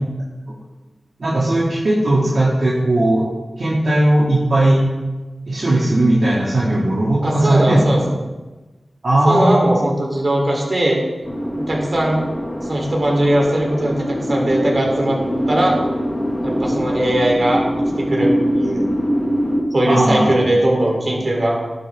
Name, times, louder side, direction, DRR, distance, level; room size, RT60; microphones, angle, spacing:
voice 1, 1.2-3.2 3.6-4.8 5.5-7.8 9.0-9.6 19.9-20.3, right 1 dB, 70° right, -6 dB, 2.4 m, -17 dB
voice 2, 7.2-8.0 9.2-11.0 11.6-12.2 12.7-15.2 15.5-15.8 16.4-17.6 18.0-18.9 19.7-21.6, right 1 dB, 55° right, -1 dB, 3.6 m, -19 dB
sound 1, 11.2-19.6, equal, 15° left, 3.0 m, -23 dB
13.5 x 11.5 x 3.7 m, 1.2 s
wide cardioid pair, 60°, 0 cm